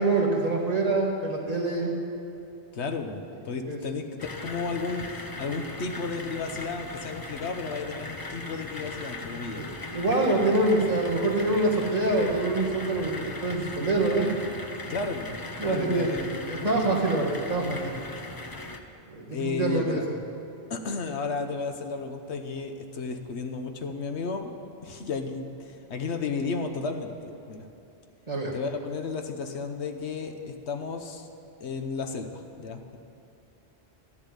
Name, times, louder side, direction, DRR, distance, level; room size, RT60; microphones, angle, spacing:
voice 1, 0.0-1.9 3.7-3.8 9.6-9.7 9.9-14.3 15.6-16.1 16.5-17.9 19.1-20.0 28.3-28.6, right 2 dB, 35° right, -3 dB, 2.0 m, -25 dB
voice 2, 2.7-9.6 14.9-15.4 15.6-16.6 19.3-20.0 20.7-24.5 24.8-27.6 28.5-31.3 31.6-33.0, left 4 dB, 75° left, 6 dB, 1.2 m, -33 dB
sound 1, 4.2-18.8, left 2 dB, 25° left, 0.6 m, -39 dB
13.5 x 7.2 x 9.8 m, 2.8 s
omnidirectional pair, 1.1 m